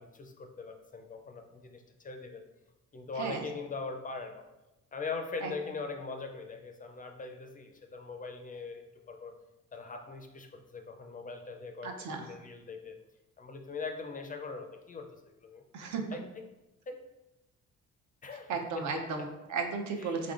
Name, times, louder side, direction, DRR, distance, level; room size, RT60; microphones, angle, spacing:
voice 1, 0.0-2.5 2.9-4.5 4.9-9.4 9.7-13.0 13.4-15.6 16.1-16.4 16.9-17.0 18.2-19.1 20.0-20.2, left 4 dB, 30° left, 5 dB, 0.4 m, -41 dB
voice 2, 11.8-12.3 15.7-16.2 18.5-20.3, right 5 dB, 70° right, 3 dB, 0.6 m, -35 dB
3.6 x 3.6 x 2.4 m, 0.99 s
cardioid pair, 90°, 30 cm